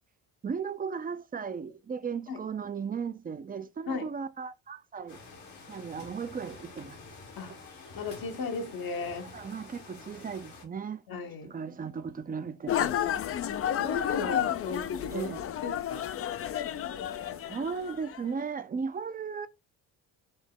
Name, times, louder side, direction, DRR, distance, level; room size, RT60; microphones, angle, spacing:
voice 1, 0.4-5.2 5.7-7.0 9.3-11.0 11.4-12.8 15.1-15.5 17.4-19.5, right 6 dB, 20° right, 0.4 m, -36 dB
sound 1, 5.1-10.6, left 3 dB, 80° left, 1.8 m, -48 dB
voice 2, 7.9-9.4 11.1-11.5 12.9-13.1 13.8-15.3 15.6-16.2, left 5 dB, 60° left, 1.0 m, -36 dB
sound 2, 12.7-18.2, left 10 dB, 35° left, 0.4 m, -31 dB
5.4 x 2.1 x 3.7 m
supercardioid pair, 70°, 41 cm